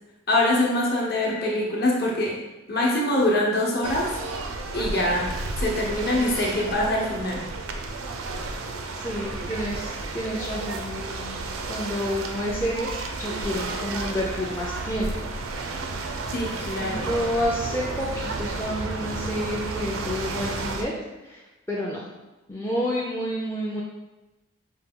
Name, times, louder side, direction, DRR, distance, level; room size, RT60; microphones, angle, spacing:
voice 1, 0.3-2.4 2.7-4.2 4.7-7.5 16.3-17.2, left 1 dB, 50° left, -2 dB, 0.9 m, -24 dB
sound 1, 3.8-20.8, right 3 dB, 85° right, 0.5 m, -32 dB
voice 2, 8.9-11.4 11.7-15.3 15.6-15.9 16.8-20.9 21.2-21.4 21.7-22.1 22.5-23.8, equal, 10° left, -4 dB, 0.4 m, -29 dB
5.5 x 2.3 x 3.6 m, 1.1 s
head